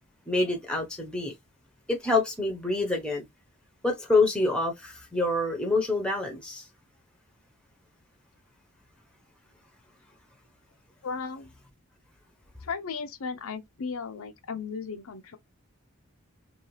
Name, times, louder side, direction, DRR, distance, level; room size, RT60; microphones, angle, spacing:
voice 1, 0.3-1.3 1.9-3.3 3.8-6.6, left 2 dB, 5° left, 0.9 m, -26 dB
voice 2, 11.0-11.5 12.6-15.4, left 5 dB, 75° left, 0.6 m, -35 dB
3.0 x 2.8 x 3.1 m
head